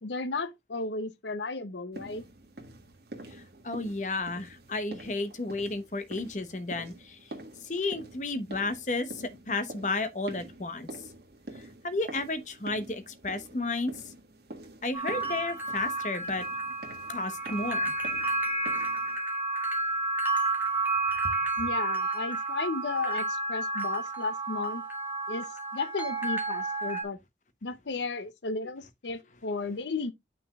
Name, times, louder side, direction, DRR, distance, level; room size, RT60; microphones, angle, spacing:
voice 1, 0.0-2.2 21.6-24.8 25.3-25.4 25.7-27.2 27.6-30.1, left 3 dB, 85° left, 0.7 m, -34 dB
sound 1, 1.9-19.2, right 1 dB, 65° right, 1.8 m, -47 dB
voice 2, 3.6-7.2 7.6-10.9 11.8-14.0 14.8-16.4 17.1-17.9, left 3 dB, 45° left, 1.0 m, -32 dB
sound 2, 14.9-27.0, right 3 dB, 10° right, 1.6 m, -31 dB
9.1 x 6.0 x 2.3 m
head